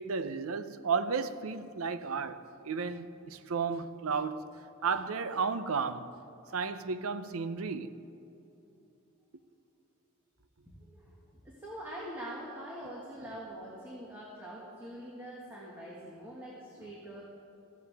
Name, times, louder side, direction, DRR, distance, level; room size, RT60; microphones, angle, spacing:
voice 1, 0.0-4.5 4.8-6.1 6.5-7.9, right 5 dB, 90° right, 0.6 m, -33 dB
voice 2, 10.8-11.1 11.4-17.2, right 1 dB, 10° right, 1.8 m, -44 dB
16.5 x 14.5 x 3.5 m
head